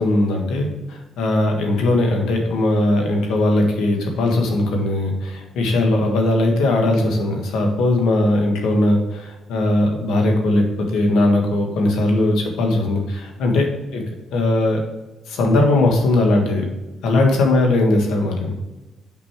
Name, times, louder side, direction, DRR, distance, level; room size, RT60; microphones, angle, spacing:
voice 1, 0.0-14.8 15.3-16.6 17.0-18.5, left 2 dB, 90° left, 2 dB, 1.6 m, -19 dB
6.0 x 5.4 x 4.7 m, 1.1 s
cardioid pair, 95°, 0 cm